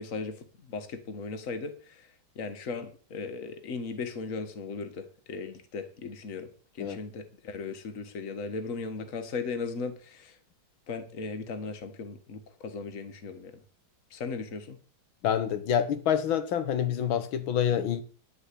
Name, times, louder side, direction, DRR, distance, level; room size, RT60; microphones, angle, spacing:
voice 1, 0.0-2.1 2.4-6.5 6.8-10.4 10.9-13.6 14.1-14.8, left 4 dB, 45° left, 1.6 m, -37 dB
voice 2, 15.2-18.0, left 9 dB, 75° left, 1.9 m, -27 dB
11.5 x 4.9 x 8.4 m
omnidirectional pair, 2.2 m